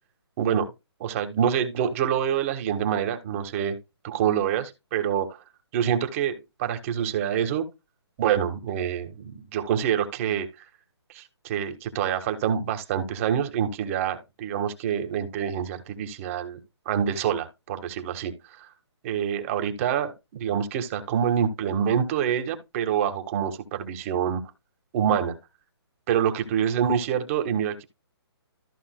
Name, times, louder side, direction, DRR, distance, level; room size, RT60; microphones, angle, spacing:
voice 1, 1.0-3.8 4.0-5.3 5.7-7.6 8.2-10.5 11.1-16.6 16.8-18.7 19.0-24.4 24.9-25.3 26.1-27.8, right 8 dB, 30° right, 1.5 m, -26 dB
14.0 x 5.4 x 2.2 m
hypercardioid pair, 155°, 14 cm